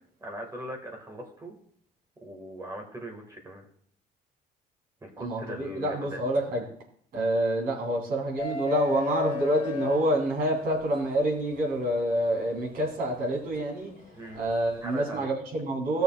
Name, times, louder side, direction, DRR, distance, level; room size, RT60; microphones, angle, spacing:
voice 1, 0.2-1.6 2.2-3.6 5.0-6.2 14.1-14.4 14.8-15.3, right 1 dB, 20° right, 2 dB, 1.7 m, -40 dB
voice 2, 5.2-6.6 7.1-13.9 14.3-16.0, right 1 dB, 60° right, -2 dB, 3.2 m, -27 dB
sound 1, 8.4-10.8 12.5-12.6 14.3-14.5, left 5 dB, 45° left, 1.4 m, -32 dB
15.5 x 6.5 x 2.3 m, 0.62 s
cardioid pair, 110°, 17 cm